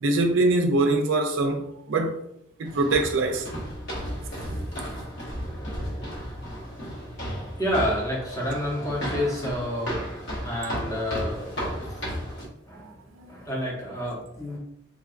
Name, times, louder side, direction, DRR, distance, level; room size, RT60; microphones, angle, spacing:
voice 1, 0.0-2.2 2.6-3.5 12.8-13.3, right 2 dB, 60° right, 0.4 m, -24 dB
sound 1, 2.6-12.5, equal, 50° left, 0.9 m, -34 dB
voice 2, 7.1-12.4 12.7-12.9 13.3-14.6, equal, 15° left, 0.7 m, -30 dB
3.7 x 2.2 x 2.4 m
head